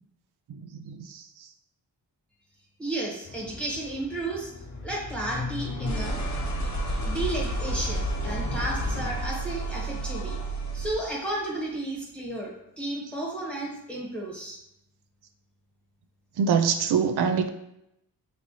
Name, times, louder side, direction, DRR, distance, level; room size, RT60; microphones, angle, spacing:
voice 1, 0.5-1.2 16.4-17.5, right 6 dB, 70° right, 7 dB, 0.6 m, -25 dB
voice 2, 2.8-4.5 4.8-6.2 7.0-10.4 10.7-14.6, right 2 dB, 5° left, -4 dB, 1.2 m, -33 dB
sound 1, 3.2-11.1, right 1 dB, 45° left, 0.9 m, -31 dB
4.3 x 3.1 x 2.8 m, 0.80 s
cardioid pair, 55°, 41 cm